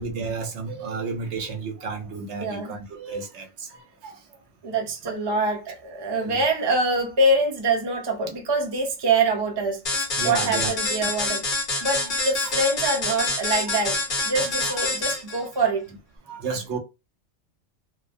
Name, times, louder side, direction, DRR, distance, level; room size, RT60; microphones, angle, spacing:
voice 1, 0.0-4.2 5.0-5.5 6.2-6.4 10.2-11.3 12.4-12.5 14.6-14.8 16.3-16.8, right 4 dB, 70° right, 0.9 m, -32 dB
voice 2, 2.4-2.7 4.6-11.5 11.8-15.9, right 2 dB, 30° right, 0.5 m, -25 dB
sound 1, 9.9-15.4, left 2 dB, 50° left, 0.9 m, -26 dB
2.4 x 2.1 x 2.5 m
omnidirectional pair, 1.3 m